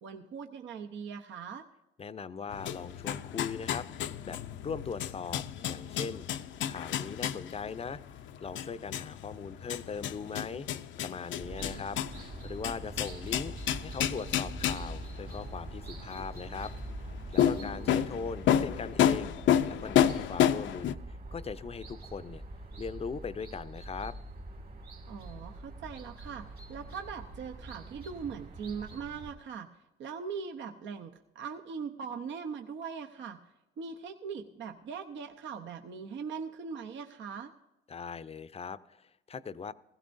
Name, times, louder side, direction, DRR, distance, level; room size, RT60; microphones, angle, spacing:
voice 1, 0.0-1.7 11.6-11.8 17.5-17.9 25.1-29.7 30.0-33.4 33.8-37.5, right 6 dB, 70° right, 5 dB, 0.8 m, -41 dB
voice 2, 2.0-6.3 6.7-8.0 8.4-10.7 11.0-12.0 12.4-16.7 17.3-19.4 19.6-22.4 22.8-24.1 37.9-39.7, left 5 dB, 30° left, 14 dB, 0.5 m, -40 dB
sound 1, 2.5-20.9, left 10 dB, 70° left, 0.6 m, -31 dB
sound 2, 11.4-29.3, right 2 dB, 50° right, 2.2 m, -44 dB
16.0 x 16.0 x 2.6 m, 0.99 s
cardioid pair, 90°, 20 cm